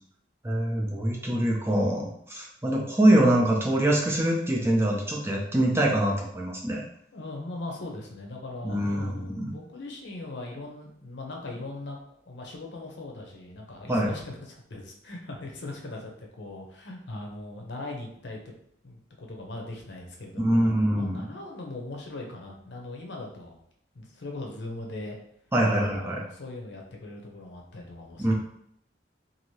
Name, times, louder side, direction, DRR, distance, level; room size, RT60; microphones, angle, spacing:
voice 1, 0.4-6.8 8.6-9.5 13.9-14.1 20.4-21.3 25.5-26.2 28.2-28.3, right 1 dB, 15° right, -2 dB, 0.4 m, -24 dB
voice 2, 7.1-12.0 12.2-18.4 18.8-23.6 23.9-25.2 25.7-28.3, left 2 dB, 70° left, 1 dB, 0.7 m, -40 dB
2.7 x 2.6 x 3.1 m, 0.71 s
head